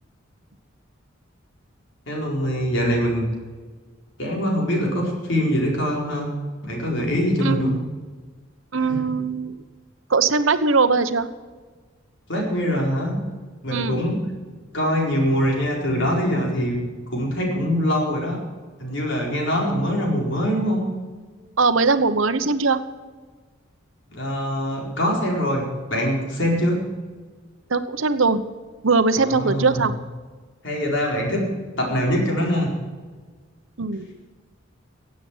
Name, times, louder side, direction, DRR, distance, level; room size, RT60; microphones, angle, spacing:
voice 1, 2.1-3.3 4.2-6.3 6.6-7.7 8.9-9.0 12.3-13.2 13.6-14.2 14.7-16.8 17.1-18.4 18.8-20.8 24.1-26.9 29.2-29.9 30.6-31.5 31.8-32.7, equal, 65° left, 0 dB, 4.5 m, -23 dB
voice 2, 7.4-7.8 8.7-9.5 10.1-11.3 13.7-14.0 21.6-22.8 27.7-28.4 28.8-29.9 33.8-34.3, right 4 dB, 75° right, 12 dB, 1.0 m, -20 dB
16.5 x 8.6 x 7.4 m, 1.4 s
head